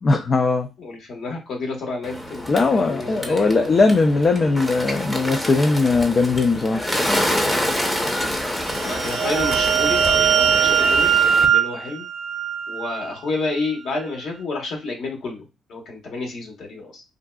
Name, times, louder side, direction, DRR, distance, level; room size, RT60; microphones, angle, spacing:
voice 1, 0.0-0.7 2.5-6.8, left 3 dB, 40° left, 4 dB, 0.4 m, -19 dB
voice 2, 0.8-3.8 8.8-12.1 12.7-17.0, left 3 dB, 70° left, 1 dB, 1.2 m, -30 dB
Bird, 2.0-11.4, equal, 10° left, 0.7 m, -27 dB
sound 1, 8.6-13.1, right 8 dB, 70° right, 0.3 m, -20 dB
3.7 x 2.3 x 2.3 m, 0.26 s
cardioid pair, 90°, 0 cm